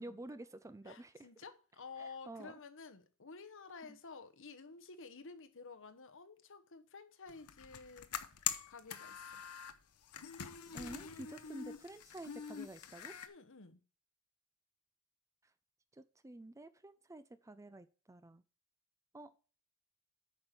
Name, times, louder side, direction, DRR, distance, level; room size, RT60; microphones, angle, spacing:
voice 1, 0.0-1.1 2.0-2.5 10.7-13.2 15.9-18.4 19.1-19.3, right 1 dB, 15° right, 0.5 m, -50 dB
voice 2, 0.8-8.1 8.7-9.4 13.2-13.8, left 4 dB, 60° left, 1.1 m, -52 dB
sound 1, 7.3-9.7 10.1-13.3, left 9 dB, 85° left, 0.9 m, -44 dB
8.8 x 5.2 x 5.9 m
head